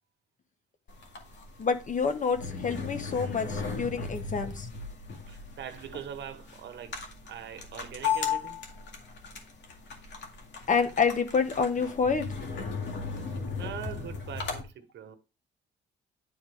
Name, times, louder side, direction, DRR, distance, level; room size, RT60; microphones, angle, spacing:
sound 1, 0.9-14.6, left 6 dB, 65° left, 2.1 m, -36 dB
voice 1, 1.6-4.7 10.7-12.3, left 5 dB, 40° left, 1.4 m, -27 dB
voice 2, 5.3-7.0 7.3-8.6 13.6-15.2, right 9 dB, 65° right, 1.2 m, -42 dB
10.5 x 4.3 x 3.5 m
cardioid pair, 90°, 20 cm